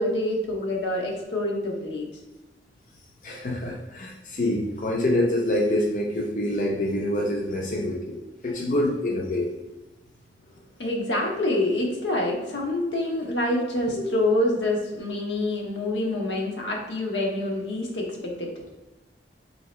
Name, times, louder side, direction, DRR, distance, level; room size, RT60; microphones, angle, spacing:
voice 1, 0.0-2.1 10.8-18.5, left 1 dB, 85° left, 0 dB, 0.8 m, -26 dB
voice 2, 3.2-8.2 8.4-9.5 13.9-14.1, left 1 dB, 45° left, -1 dB, 0.5 m, -26 dB
2.8 x 2.8 x 4.2 m, 1.1 s
head